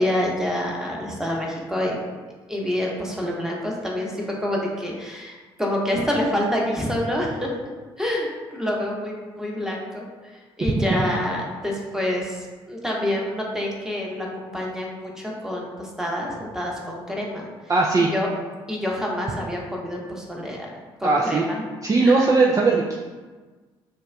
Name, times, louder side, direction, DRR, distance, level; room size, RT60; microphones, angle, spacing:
voice 1, 0.0-2.0 2.5-7.5 8.0-17.5 18.0-18.3 18.7-20.7 21.0-21.6 22.0-22.2, left 1 dB, 5° right, -2 dB, 1.1 m, -27 dB
voice 2, 17.7-18.1 21.0-21.5 21.8-22.9, right 3 dB, 25° right, -2 dB, 0.5 m, -19 dB
6.5 x 2.4 x 2.3 m, 1.3 s
hypercardioid pair, 50°, 12 cm